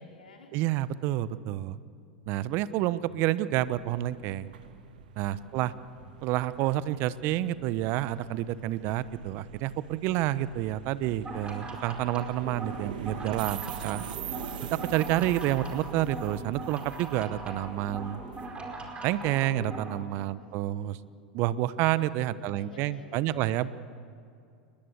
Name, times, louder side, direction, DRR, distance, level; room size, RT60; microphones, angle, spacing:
voice 1, 0.0-0.5 5.2-5.9 20.4-20.9 22.4-23.7, left 2 dB, 80° left, 1 dB, 4.8 m, -54 dB
voice 2, 0.5-1.8 2.3-4.5 5.2-5.7 6.2-14.0 14.7-18.2 19.0-21.0 21.3-23.7, right 14 dB, 55° right, 16 dB, 1.0 m, -29 dB
sound 1, 3.6-19.2, right 9 dB, 75° right, 1.5 m, -44 dB
sound 2, 11.1-20.0, right 2 dB, 20° right, 4.9 m, -41 dB
29.0 x 20.5 x 8.2 m, 2.4 s
hypercardioid pair, 85°, 5 cm